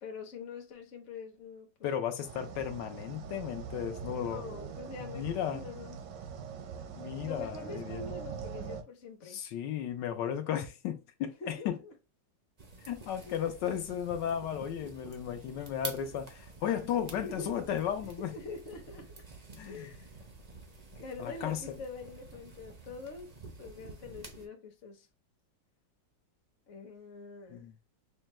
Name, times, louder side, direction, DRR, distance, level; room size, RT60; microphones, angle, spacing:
voice 1, 0.0-1.9 3.9-6.0 7.2-9.4 11.4-11.9 13.2-13.4 17.2-17.6 18.2-19.2 19.6-20.2 20.9-23.3 23.6-25.1 26.7-27.7, left 4 dB, 50° left, 1.0 m, -45 dB
voice 2, 1.8-4.4 5.0-5.7 7.0-8.1 9.3-11.7 12.8-18.3 19.6-19.9 21.2-21.6 27.5-27.7, left 9 dB, 80° left, 1.3 m, -35 dB
sound 1, 2.2-8.8, right 6 dB, 80° right, 1.3 m, -43 dB
sound 2, 12.6-24.5, right 3 dB, 60° right, 0.4 m, -48 dB
5.4 x 2.2 x 3.0 m
omnidirectional pair, 1.9 m